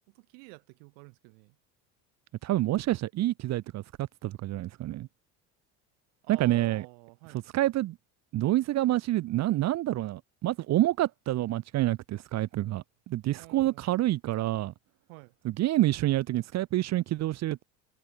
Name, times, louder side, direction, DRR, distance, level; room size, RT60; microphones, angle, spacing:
voice 1, 0.1-1.6 6.2-7.4 13.4-14.0 15.1-15.4, right 40 dB or more, 80° right, 3.2 m, -50 dB
voice 2, 2.4-5.1 6.3-6.9 7.3-8.0 8.3-14.7 15.4-17.6, right 15 dB, 45° right, 0.6 m, -28 dB
supercardioid pair, 105°, 40 cm